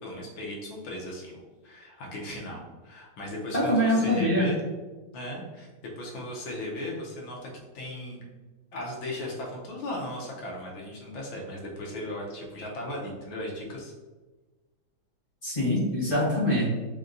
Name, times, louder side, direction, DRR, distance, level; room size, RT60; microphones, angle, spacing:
voice 1, 0.0-4.6 5.1-5.7 6.0-8.2 8.7-13.9, left 1 dB, 75° left, -2 dB, 1.6 m, -37 dB
voice 2, 3.5-4.5 15.4-16.7, equal, 35° left, -7 dB, 1.0 m, -24 dB
6.6 x 2.2 x 2.5 m, 1.2 s
omnidirectional pair, 2.3 m